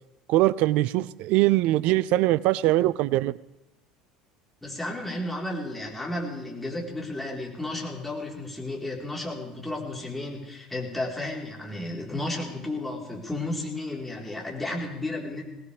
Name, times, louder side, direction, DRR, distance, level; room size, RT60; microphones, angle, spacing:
voice 1, 0.3-3.4, right 16 dB, 55° right, 21 dB, 0.5 m, -22 dB
voice 2, 4.6-15.4, left 2 dB, 5° left, -2 dB, 4.2 m, -33 dB
22.5 x 18.0 x 3.5 m, 0.95 s
figure-of-eight pair, 65°, 3 cm